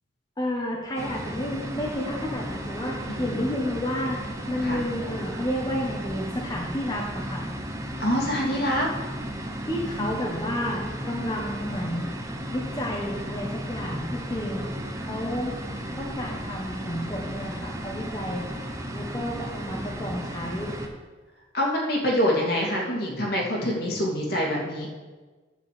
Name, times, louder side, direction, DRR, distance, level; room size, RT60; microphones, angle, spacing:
voice 1, 0.4-4.2 4.5-7.4 9.7-12.1 12.5-14.7 15.0-15.5 16.0-18.5 18.9-20.7, left 1 dB, 20° left, -2 dB, 1.3 m, -31 dB
sound 1, 0.9-20.9, equal, 15° right, 1.1 m, -34 dB
voice 2, 3.1-3.4 4.6-4.8 8.0-8.9 10.0-10.3 21.5-24.9, equal, 60° left, -3 dB, 2.7 m, -26 dB
10.5 x 4.9 x 7.8 m, 1.3 s
head